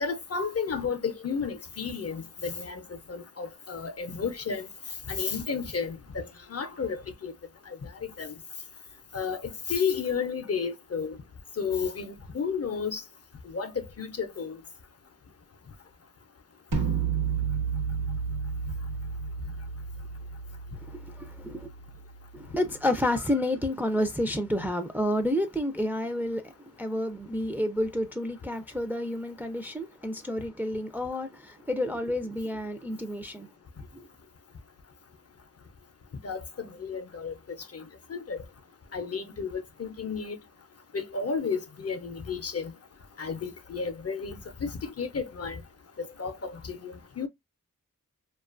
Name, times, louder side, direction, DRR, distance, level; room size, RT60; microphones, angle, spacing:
voice 1, 0.0-4.7 5.1-7.3 7.7-8.3 9.1-11.2 11.6-13.0 13.5-14.6 24.6-24.7 36.2-37.3 37.7-38.4 38.9-40.4 40.9-42.7 43.2-45.6 46.0-47.3, left 5 dB, 50° left, 0.5 m, -32 dB
sound 1, 16.7-22.7, right 6 dB, 75° right, 0.9 m, -32 dB
voice 2, 20.8-21.7 22.3-33.5 33.9-34.1, left 1 dB, 5° right, 0.4 m, -30 dB
2.4 x 2.3 x 2.4 m
wide cardioid pair, 55°, 33 cm